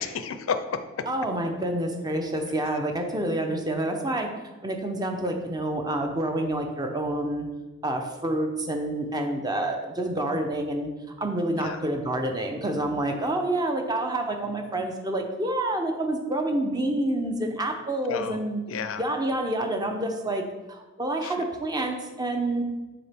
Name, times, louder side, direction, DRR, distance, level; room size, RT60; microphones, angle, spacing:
voice 1, 0.0-1.1 11.6-11.8 18.0-18.4 18.7-19.0 21.2-21.3, left 6 dB, 70° left, 10 dB, 0.4 m, -31 dB
voice 2, 1.1-4.3 4.6-7.5 7.8-10.9 11.2-18.6 19.0-22.6, right 1 dB, 20° right, 4 dB, 0.6 m, -28 dB
6.9 x 3.9 x 3.4 m, 1.1 s
head